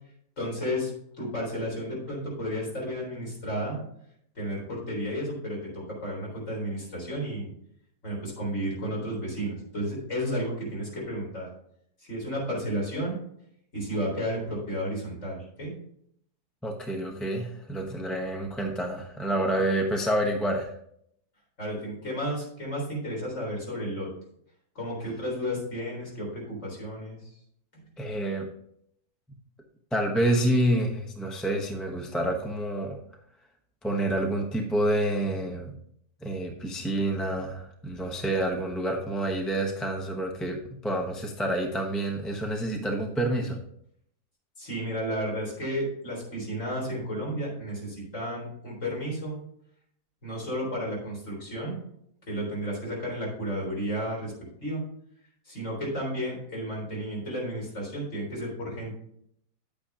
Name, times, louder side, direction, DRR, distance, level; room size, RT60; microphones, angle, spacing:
voice 1, 0.4-0.9 1.2-3.8 4.4-7.5 8.0-11.5 12.1-13.2 13.7-15.7 21.6-24.1 24.8-27.4 27.7-27.8 44.6-49.4 50.2-51.7 52.3-54.3 54.6-54.8 55.5-58.9, equal, 50° left, -3 dB, 4.2 m, -32 dB
voice 2, 16.6-20.7 28.0-28.5 29.9-33.0 33.8-35.7 36.2-43.6, right 1 dB, ahead, 1 dB, 0.7 m, -28 dB
9.9 x 8.6 x 2.9 m, 0.70 s
omnidirectional pair, 1.7 m